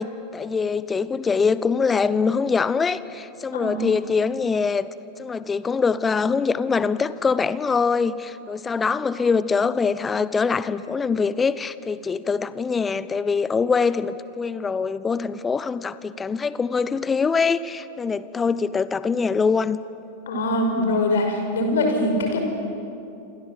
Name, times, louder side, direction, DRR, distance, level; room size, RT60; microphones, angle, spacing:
voice 1, 0.0-4.9 5.2-19.8, left 5 dB, 15° left, 16 dB, 1.0 m, -23 dB
voice 2, 3.5-3.9 20.3-22.4, left 1 dB, 60° left, 4 dB, 5.5 m, -23 dB
28.0 x 27.0 x 7.7 m, 2.7 s
figure-of-eight pair, 90°, 0 cm